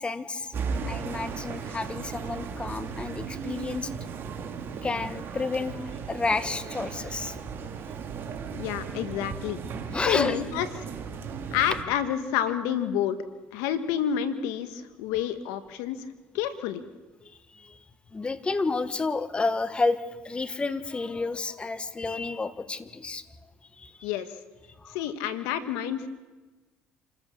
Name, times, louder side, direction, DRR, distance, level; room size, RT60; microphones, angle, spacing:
voice 1, 0.0-3.9 4.8-7.4 9.9-10.4 17.2-17.8 18.1-23.2 23.8-24.1 24.8-25.0, left 3 dB, 20° left, 12 dB, 1.4 m, -30 dB
sound 1, 0.5-11.8, right 6 dB, 50° right, 2.5 m, -36 dB
voice 2, 8.6-9.6 10.1-10.7 11.5-13.2 13.5-16.0 16.3-16.9 24.0-24.3 24.9-26.1, left 10 dB, 85° left, 11 dB, 1.5 m, -29 dB
28.0 x 14.5 x 7.2 m, 1.2 s
supercardioid pair, 95°, 5 cm